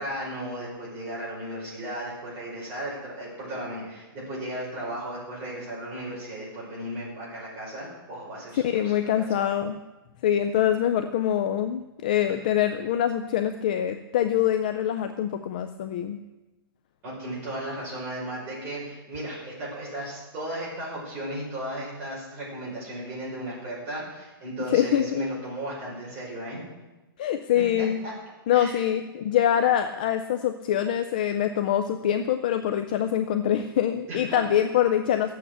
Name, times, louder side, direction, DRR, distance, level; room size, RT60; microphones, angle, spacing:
voice 1, 0.0-9.5 17.0-26.6 27.5-28.1 28.5-28.8 34.1-34.4, right 1 dB, 20° right, -6 dB, 5.1 m, -35 dB
voice 2, 8.5-9.8 10.2-16.2 24.7-25.2 27.2-28.0 28.5-35.4, left 10 dB, 20° left, 8 dB, 0.3 m, -24 dB
13.5 x 8.5 x 7.9 m, 1.1 s
hypercardioid pair, 175°, 13 cm